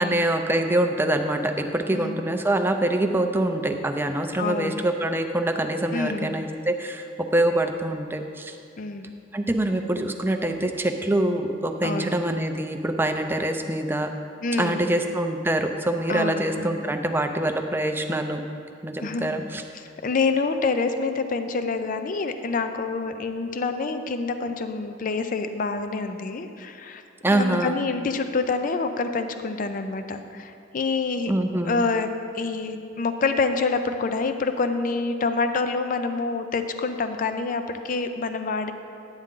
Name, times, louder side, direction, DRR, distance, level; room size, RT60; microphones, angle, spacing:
voice 1, 0.0-8.6 9.3-14.1 14.6-18.4 18.8-19.6 27.2-27.8 31.3-31.8, right 1 dB, 10° right, 5 dB, 0.5 m, -25 dB
voice 2, 1.9-2.3 4.4-4.8 5.9-6.4 8.8-9.1 11.8-12.1 14.4-14.9 16.1-16.8 19.0-19.4 19.7-27.0 27.3-31.3 31.6-38.7, left 4 dB, 45° left, 8 dB, 0.4 m, -27 dB
10.5 x 8.8 x 3.7 m, 2.5 s
head